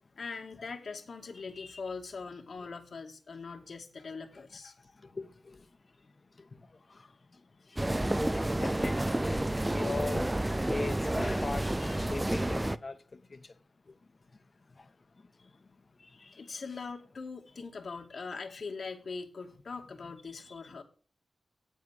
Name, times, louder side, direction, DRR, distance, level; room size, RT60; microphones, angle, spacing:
voice 1, 0.2-4.7 16.4-20.8, left 4 dB, 65° left, 2.4 m, -42 dB
voice 2, 4.8-5.7 6.0-6.1 6.4-8.0 8.3-10.3 10.6-13.5 13.9-14.0 14.7-15.7 16.0-16.5 18.1-18.2 20.5-20.8, left 3 dB, 45° left, 1.4 m, -42 dB
sound 1, 7.8-12.8, right 1 dB, 15° right, 0.5 m, -30 dB
9.3 x 8.3 x 6.4 m
cardioid pair, 75°, 0 cm